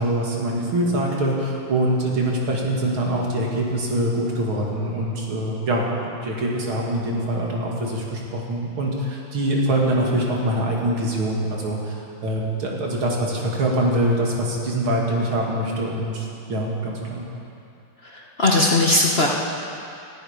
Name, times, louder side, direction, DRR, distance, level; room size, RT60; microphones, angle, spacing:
voice 1, 0.0-11.9 12.2-17.2, right 1 dB, 80° right, -2 dB, 3.2 m, -24 dB
voice 2, 18.0-19.3, left 2 dB, 35° left, -2 dB, 1.2 m, -19 dB
20.5 x 13.5 x 5.1 m, 2.6 s
omnidirectional pair, 2.2 m